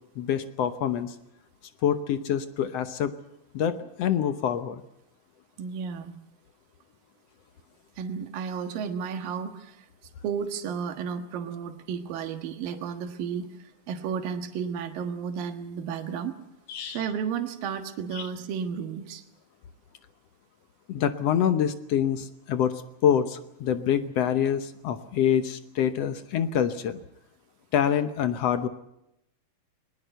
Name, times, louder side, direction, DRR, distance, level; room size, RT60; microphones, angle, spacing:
voice 1, 0.2-1.2 1.8-3.1 3.5-4.8 16.7-17.0 18.1-18.3 20.9-27.0 27.7-28.7, left 9 dB, 70° left, 10 dB, 1.6 m, -26 dB
voice 2, 5.6-6.2 8.0-9.9 10.2-16.3 16.9-19.2, right 7 dB, 80° right, 6 dB, 3.2 m, -33 dB
21.5 x 21.0 x 8.0 m, 0.82 s
omnidirectional pair, 4.0 m